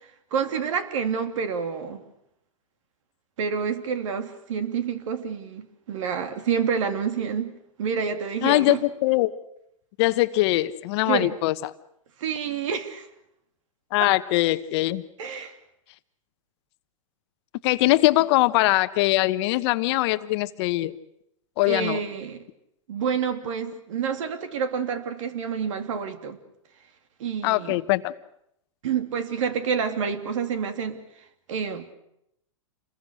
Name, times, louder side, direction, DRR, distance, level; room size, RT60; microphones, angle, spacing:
voice 1, 0.3-2.0 3.4-7.5 7.8-8.8 11.0-11.3 12.2-13.1 14.0-14.1 15.2-15.5 21.7-22.4 22.9-26.4 27.2-27.8 28.8-31.0 31.5-31.9, right 6 dB, 70° right, 8 dB, 3.0 m, -28 dB
voice 2, 8.4-9.3 10.0-11.5 13.9-15.0 17.6-20.9 21.6-22.0 27.4-28.1, left 18 dB, 50° left, 13 dB, 1.1 m, -22 dB
28.5 x 21.5 x 6.4 m, 0.79 s
hypercardioid pair, 120°, 17 cm